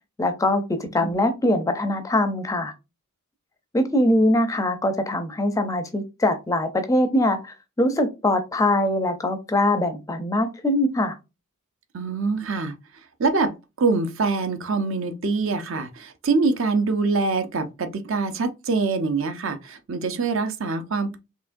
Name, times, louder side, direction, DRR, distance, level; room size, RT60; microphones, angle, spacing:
voice 1, 0.2-2.7 3.7-11.1, left 1 dB, 15° left, 0.4 m, -22 dB
voice 2, 11.9-12.8 13.2-21.2, right 4 dB, 60° right, 0.6 m, -24 dB
4.6 x 2.9 x 2.5 m
head